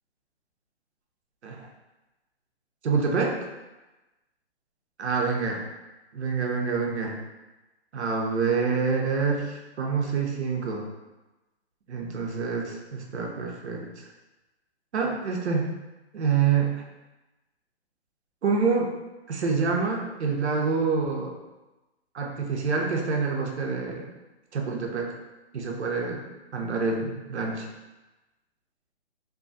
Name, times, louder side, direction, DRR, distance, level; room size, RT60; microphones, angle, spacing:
voice 1, 2.8-3.4 5.0-5.6 6.1-7.2 7.9-10.9 11.9-14.0 14.9-15.7 16.1-16.8 18.4-18.9 19.3-21.4 22.1-24.1 24.5-25.1 25.5-26.2 26.5-27.7, right 5 dB, 90° right, 0 dB, 0.7 m, -27 dB
2.6 x 2.3 x 2.5 m, 1.1 s
hypercardioid pair, 155°, 32 cm